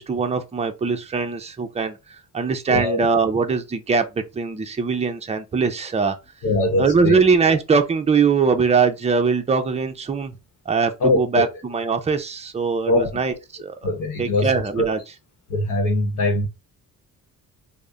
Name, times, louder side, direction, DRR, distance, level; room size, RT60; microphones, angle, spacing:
voice 1, 0.0-2.0 2.3-6.2 6.8-10.4 10.7-13.3 13.6-13.7 14.2-15.0, right 5 dB, 20° right, 0.5 m, -21 dB
voice 2, 2.7-3.1 6.4-7.2 11.0-11.2 12.9-13.1 13.8-14.5 14.8-14.9 15.5-16.5, left 2 dB, 65° left, 1.0 m, -21 dB
3.4 x 2.1 x 3.8 m
cardioid pair, 150°, 33 cm